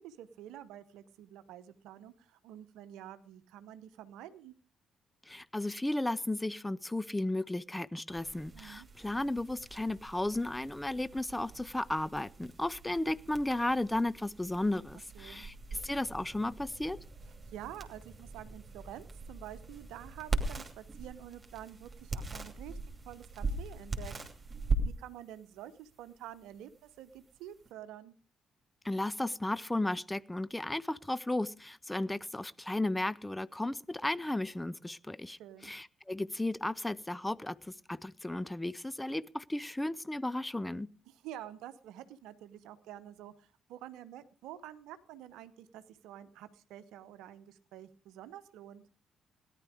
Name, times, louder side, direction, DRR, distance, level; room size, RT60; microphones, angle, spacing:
voice 1, 0.0-4.5 8.5-8.9 15.1-15.5 17.5-22.8 23.1-24.1 24.8-28.1 35.4-35.7 41.1-48.8, right 12 dB, 65° right, 0.9 m, -48 dB
voice 2, 5.3-17.0 28.8-40.9, left 1 dB, 10° left, 0.6 m, -34 dB
sound 1, 8.1-27.7, right 3 dB, 30° right, 2.7 m, -41 dB
17.5 x 11.0 x 5.0 m
figure-of-eight pair, 45°, 0 cm